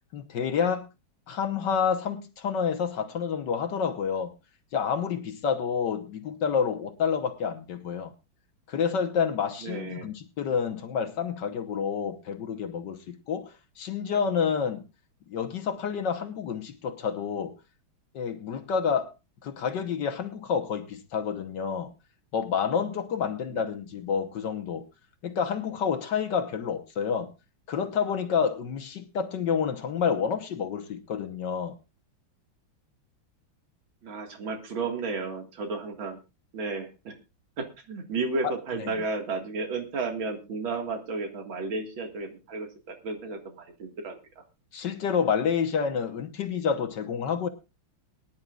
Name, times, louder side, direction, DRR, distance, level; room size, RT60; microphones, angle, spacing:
voice 1, 0.1-0.9 1.3-4.3 4.7-8.1 8.7-14.8 15.3-17.5 18.1-19.1 19.4-21.9 22.3-24.9 25.2-27.3 27.7-31.8 38.4-38.5 38.8-38.9 44.7-47.5, left 6 dB, 60° left, 1.6 m, -29 dB
voice 2, 9.6-10.1 23.5-23.6 34.0-36.2 36.5-37.1 37.6-44.4, right 3 dB, 70° right, 2.7 m, -33 dB
22.5 x 10.5 x 2.4 m
omnidirectional pair, 2.3 m